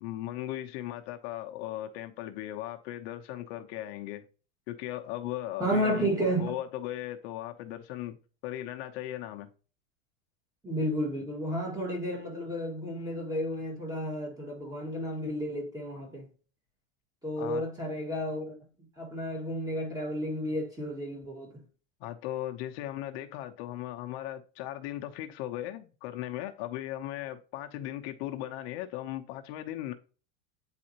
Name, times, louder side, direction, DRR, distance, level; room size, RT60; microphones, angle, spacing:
voice 1, 0.0-4.2 4.7-8.2 8.4-9.5 17.4-17.7 22.0-29.9, left 13 dB, 55° left, 0.7 m, -37 dB
voice 2, 5.6-6.5 10.6-16.2 17.2-18.5 19.0-21.6, equal, 10° right, 1.7 m, -32 dB
8.6 x 4.2 x 2.8 m
supercardioid pair, 160°, 37 cm